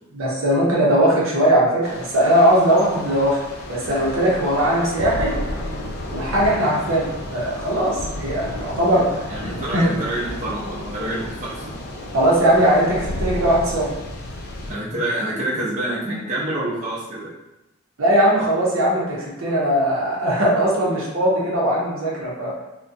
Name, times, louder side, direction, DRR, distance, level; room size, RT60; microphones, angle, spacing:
voice 1, 0.1-3.4 3.7-5.4 6.1-7.1 7.3-9.2 9.7-9.9 12.1-13.9 18.0-22.5, right 1 dB, 80° right, -5 dB, 0.7 m, -19 dB
Thunder / Rain, 1.8-14.7, left 1 dB, 50° left, 0.3 m, -32 dB
voice 2, 9.3-11.7 14.7-17.3, right 1 dB, 35° right, -8 dB, 0.7 m, -27 dB
2.4 x 2.2 x 2.6 m, 1.0 s
head